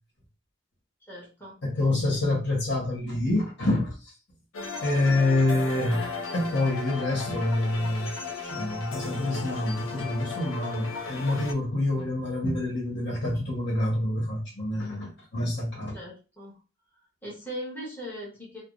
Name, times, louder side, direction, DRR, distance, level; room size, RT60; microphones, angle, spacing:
voice 1, 1.1-1.6 1.9-2.3 15.9-16.6 17.2-18.6, equal, 10° left, 1.1 m, -40 dB
voice 2, 1.6-3.9 4.8-8.2 8.5-15.9, left 2 dB, 65° left, 1.2 m, -27 dB
sound 1, 4.5-11.5, left 4 dB, 85° left, 0.6 m, -35 dB
3.3 x 2.0 x 2.5 m
head